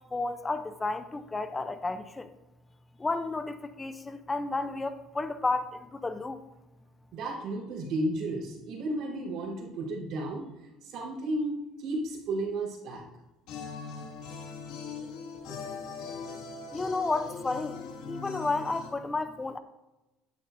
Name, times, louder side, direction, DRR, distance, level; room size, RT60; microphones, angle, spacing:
voice 1, 0.1-2.3 3.0-6.4 16.7-17.8 18.1-19.6, left 3 dB, 15° left, 11 dB, 0.6 m, -32 dB
voice 2, 7.1-10.5 10.8-13.0, right 1 dB, 65° right, -2 dB, 4.2 m, -33 dB
sound 1, 13.5-18.9, left 5 dB, 80° left, 2.1 m, -40 dB
12.0 x 11.0 x 2.7 m, 1.0 s
cardioid pair, 110°, 0 cm